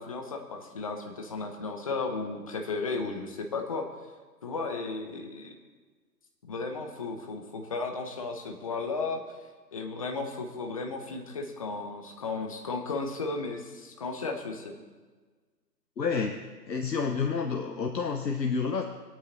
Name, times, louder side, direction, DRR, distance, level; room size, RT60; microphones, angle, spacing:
voice 1, 0.0-3.9 4.4-5.5 6.5-9.2 9.7-14.7, left 3 dB, 20° left, 4 dB, 0.9 m, -34 dB
voice 2, 16.0-16.4 16.7-18.8, left 5 dB, 80° left, 4 dB, 1.3 m, -29 dB
21.0 x 9.0 x 4.1 m, 1.4 s
figure-of-eight pair, 150°, 50 cm